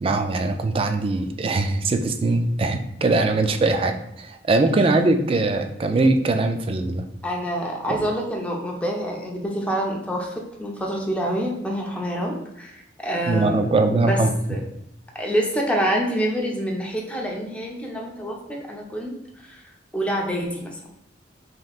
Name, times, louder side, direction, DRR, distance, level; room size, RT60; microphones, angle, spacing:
voice 1, 0.0-7.0 7.9-8.0 13.3-14.3, right 2 dB, 30° right, 6 dB, 0.4 m, -21 dB
voice 2, 7.2-13.7 14.0-14.2 14.5-14.6 15.1-19.6 19.9-20.8, equal, 5° left, -1 dB, 0.7 m, -27 dB
5.1 x 3.0 x 2.4 m, 0.85 s
head